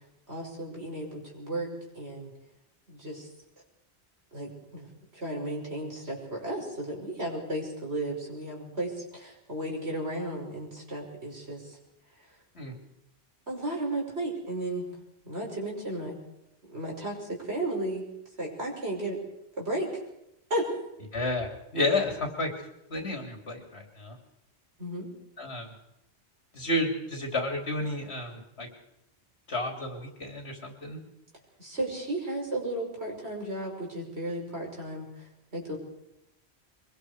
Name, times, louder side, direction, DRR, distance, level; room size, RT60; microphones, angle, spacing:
voice 1, 0.3-1.7 1.9-2.3 2.9-3.3 4.3-4.9 5.1-11.8 13.5-14.8 15.2-16.2 16.7-18.1 18.4-19.2 19.6-20.0 20.5-20.7 24.8-25.1 31.6-35.8, right 1 dB, 90° right, -1 dB, 6.1 m, -34 dB
voice 2, 21.1-22.5 22.9-24.2 25.4-25.7 26.5-28.7 29.5-31.0, left 2 dB, 85° left, 2 dB, 3.5 m, -31 dB
24.0 x 22.0 x 5.0 m, 0.86 s
omnidirectional pair, 1.1 m